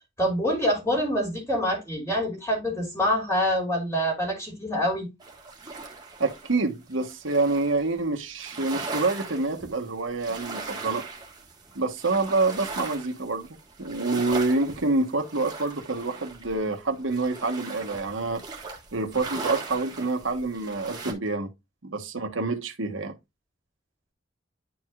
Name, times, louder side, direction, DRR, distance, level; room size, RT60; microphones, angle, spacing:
voice 1, 0.2-5.1, equal, 10° left, 2.6 m, -26 dB
sound 1, 5.2-7.9 8.4-21.1, right 3 dB, 20° right, 1.6 m, -39 dB
voice 2, 6.2-11.0 11.7-13.5 13.8-18.4 18.9-21.5 21.8-23.2, right 3 dB, 75° right, 1.3 m, -27 dB
10.5 x 4.7 x 2.4 m
head